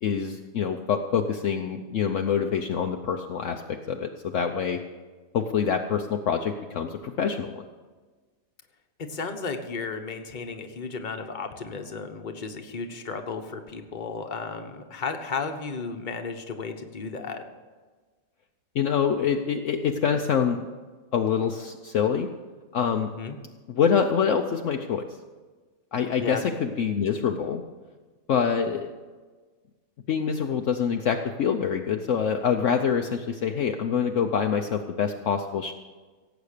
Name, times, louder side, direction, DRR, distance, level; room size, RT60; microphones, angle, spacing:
voice 1, 0.0-3.6 3.9-4.8 5.3-7.5 18.7-20.7 21.1-22.3 22.7-23.1 23.7-25.0 25.9-27.6 28.3-28.9 30.1-35.7, left 7 dB, 65° left, 4 dB, 1.0 m, -25 dB
voice 2, 9.0-17.4 23.1-23.4 26.2-26.4, left 4 dB, 35° left, 5 dB, 1.2 m, -34 dB
17.0 x 8.1 x 6.6 m, 1.4 s
omnidirectional pair, 1.5 m